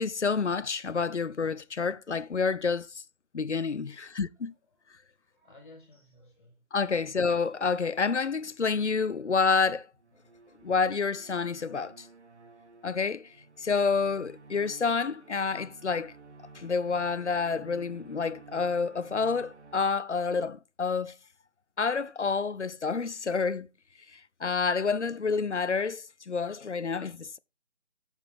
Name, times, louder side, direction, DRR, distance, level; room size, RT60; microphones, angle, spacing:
voice 1, 0.0-2.9 3.3-4.5 6.7-9.9 10.6-12.1 12.8-13.3 13.6-16.1 16.6-21.1 21.8-23.7 24.1-27.4, left 5 dB, 55° left, 0.5 m, -28 dB
voice 2, 3.9-4.2 4.6-6.6 6.9-7.0, left 2 dB, 25° left, 2.4 m, -57 dB
sound 1, 10.0-19.8, right 4 dB, 55° right, 1.1 m, -52 dB
7.7 x 7.0 x 3.4 m
figure-of-eight pair, 165°, 42 cm